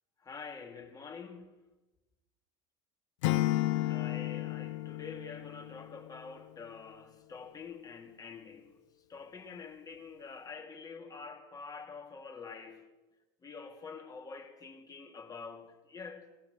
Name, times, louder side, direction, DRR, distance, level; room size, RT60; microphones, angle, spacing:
voice 1, 0.2-1.6 3.7-8.8 9.1-12.9 13.4-16.3, left 5 dB, 25° left, 2.9 m, -46 dB
Acoustic guitar / Strum, 3.2-6.3, left 16 dB, 90° left, 0.9 m, -32 dB
21.0 x 19.0 x 6.6 m
supercardioid pair, 120°, 15 cm